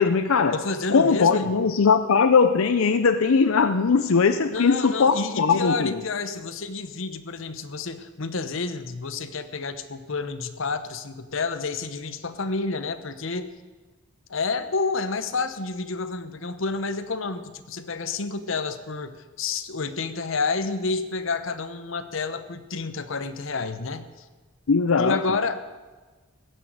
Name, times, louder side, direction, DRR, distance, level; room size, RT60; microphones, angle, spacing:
voice 1, 0.0-0.6 0.9-6.0 24.7-25.2, left 5 dB, 90° left, 9 dB, 0.6 m, -20 dB
voice 2, 0.5-1.5 4.5-13.5 14.3-24.2 25.0-25.6, left 4 dB, 65° left, 10 dB, 0.9 m, -29 dB
15.5 x 6.4 x 9.2 m, 1.3 s
head